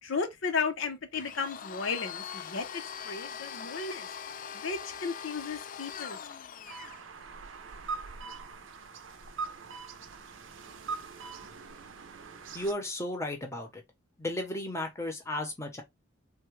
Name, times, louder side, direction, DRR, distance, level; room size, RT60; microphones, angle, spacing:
voice 1, 0.0-4.1 4.5-6.2, left 5 dB, 75° left, 0.7 m, -34 dB
Domestic sounds home sounds, 1.1-7.0, left 7 dB, 45° left, 0.3 m, -42 dB
sound 1, 6.6-12.7, right 4 dB, 70° right, 0.6 m, -42 dB
voice 2, 12.5-13.8 14.2-15.8, left 1 dB, 15° left, 0.7 m, -34 dB
3.4 x 2.2 x 3.1 m
head